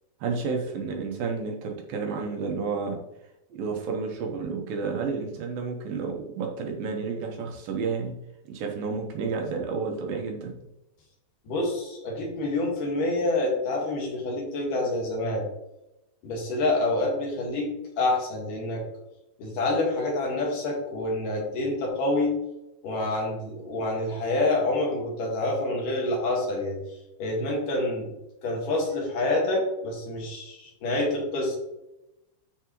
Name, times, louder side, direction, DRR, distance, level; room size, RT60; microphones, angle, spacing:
voice 1, 0.2-3.0 3.5-8.2 8.5-10.5, right 5 dB, 75° right, 2 dB, 2.2 m, -31 dB
voice 2, 11.5-15.4 16.2-18.8 19.4-22.3 22.8-26.8 27.2-28.1 28.4-31.6, left 2 dB, 55° left, -1 dB, 2.9 m, -27 dB
13.0 x 4.8 x 3.1 m, 0.92 s
omnidirectional pair, 5.2 m